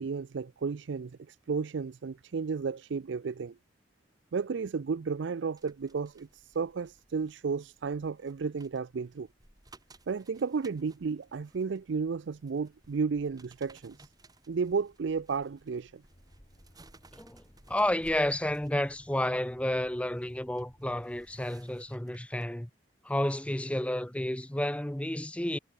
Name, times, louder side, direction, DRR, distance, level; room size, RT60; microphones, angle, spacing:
voice 1, 0.0-3.6 4.3-9.3 10.1-14.1 14.5-16.0, right 5 dB, 75° right, 0.4 m, -33 dB
sound 1, 5.6-22.4 22.9-23.1, right 2 dB, 20° right, 7.1 m, -60 dB
sound 2, 16.1-21.6, equal, 30° left, 4.8 m, -61 dB
voice 2, 17.1-22.7 23.0-25.6, left 1 dB, 5° left, 0.7 m, -31 dB
head